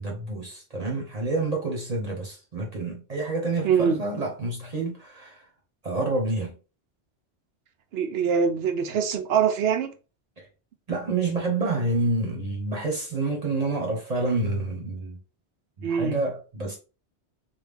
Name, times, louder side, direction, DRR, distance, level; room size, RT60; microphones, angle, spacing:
voice 1, 0.0-5.5 5.8-6.5 10.4-10.5 10.9-15.2 15.8-16.8, right 2 dB, 40° right, 0.9 m, -28 dB
voice 2, 3.6-4.0 7.9-9.9 15.8-16.2, right 7 dB, 70° right, 0.8 m, -23 dB
3.3 x 2.3 x 3.5 m
omnidirectional pair, 1.1 m